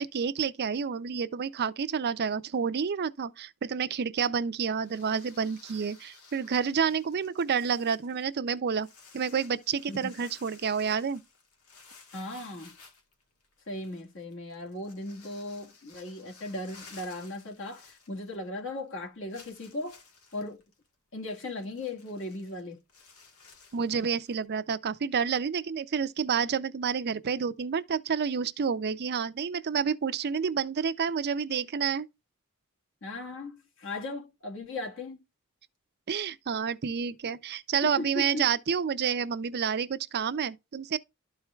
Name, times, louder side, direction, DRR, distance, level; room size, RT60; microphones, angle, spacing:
voice 1, 0.0-8.9 9.1-11.2 23.7-32.1 36.1-41.0, right 6 dB, 50° right, 0.5 m, -29 dB
sound 1, 4.8-18.6 18.9-19.0 19.3-24.5, left 4 dB, 90° left, 1.5 m, -55 dB
voice 2, 12.1-12.7 13.7-20.0 20.3-20.6 21.1-22.8 33.0-35.2 37.8-38.5, left 2 dB, 65° left, 1.8 m, -37 dB
12.5 x 4.4 x 2.3 m
head